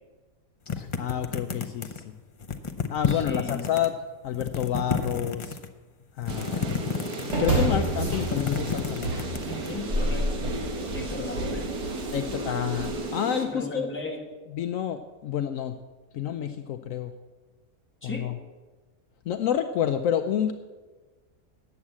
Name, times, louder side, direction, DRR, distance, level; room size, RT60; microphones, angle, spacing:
voice 1, 0.7-2.1 2.9-3.9 4.2-5.6 6.2-7.0 7.2-9.2 11.0-11.3 12.1-13.9 14.5-15.8 16.1-17.1 18.0-18.4 19.3-20.5, left 9 dB, 70° left, 8 dB, 0.9 m, -29 dB
sound 1, 0.7-2.0 2.4-3.9 4.3-5.7 6.2-7.6 7.9-9.7, left 6 dB, 50° left, 0.3 m, -30 dB
voice 2, 3.1-3.6 9.5-10.3 10.9-11.7 13.5-14.3 18.0-18.3, left 2 dB, 10° left, 0 dB, 1.4 m, -36 dB
sound 2, 6.3-13.5, right 3 dB, 90° right, 1.7 m, -35 dB
sound 3, 7.3-13.0, right 1 dB, 50° right, 3.5 m, -30 dB
9.7 x 7.4 x 8.3 m, 1.3 s
omnidirectional pair, 1.6 m